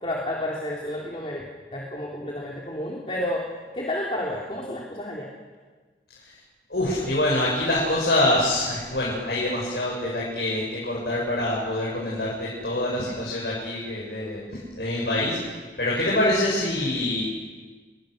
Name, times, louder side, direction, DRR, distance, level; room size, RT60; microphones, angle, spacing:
voice 1, 0.0-1.4 1.7-3.5 3.7-5.3, left 1 dB, 30° left, -3 dB, 3.4 m, -30 dB
voice 2, 6.7-15.4 15.8-17.3, left 1 dB, 65° left, -5 dB, 7.5 m, -25 dB
29.5 x 22.5 x 6.7 m, 1.4 s
head